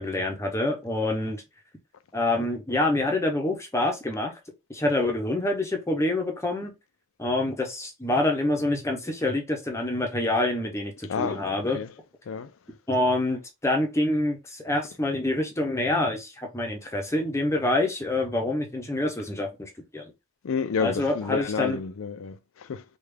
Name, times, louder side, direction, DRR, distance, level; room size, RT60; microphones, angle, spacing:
voice 1, 0.0-1.4 2.1-4.3 4.7-6.7 7.2-11.8 12.9-20.1 20.8-21.8, left 2 dB, 15° left, 0.6 m, -26 dB
voice 2, 11.1-11.9 12.3-12.5 20.4-22.8, left 6 dB, 75° left, 0.4 m, -30 dB
3.4 x 2.3 x 3.3 m
head